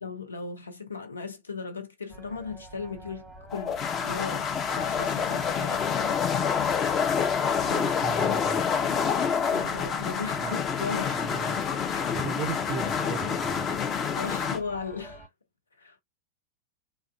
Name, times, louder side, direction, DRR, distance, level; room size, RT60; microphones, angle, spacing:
voice 1, 0.0-6.2 7.7-8.0 9.5-11.2 11.9-12.1 14.2-15.3 15.8-16.0, left 4 dB, 75° left, 0.6 m, -37 dB
sound 1, 2.1-15.3, right 1 dB, 5° left, 1.0 m, -46 dB
sound 2, 3.5-14.6, left 7 dB, 25° left, 0.5 m, -27 dB
voice 2, 8.0-8.6 10.4-10.6 11.1-13.8, right 7 dB, 40° right, 0.4 m, -37 dB
3.3 x 2.4 x 2.2 m
figure-of-eight pair, 90°, 0 cm